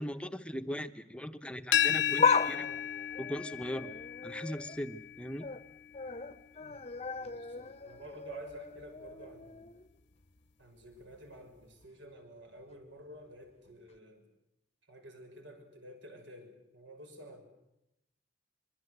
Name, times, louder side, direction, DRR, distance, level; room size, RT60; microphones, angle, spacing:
voice 1, 0.0-2.7 3.2-3.9 4.2-5.5, equal, 5° left, 9 dB, 0.9 m, -39 dB
sound 1, 1.7-7.5, left 9 dB, 70° left, 1.0 m, -35 dB
sound 2, 2.2-4.8 5.2-5.6 5.9-9.9 10.2-10.3 11.3-11.4, left 5 dB, 35° left, 0.9 m, -35 dB
voice 2, 7.2-9.7 10.6-14.3 14.9-17.4, right 1 dB, 80° right, 4 dB, 6.2 m, -51 dB
25.0 x 22.5 x 8.0 m, 0.87 s
head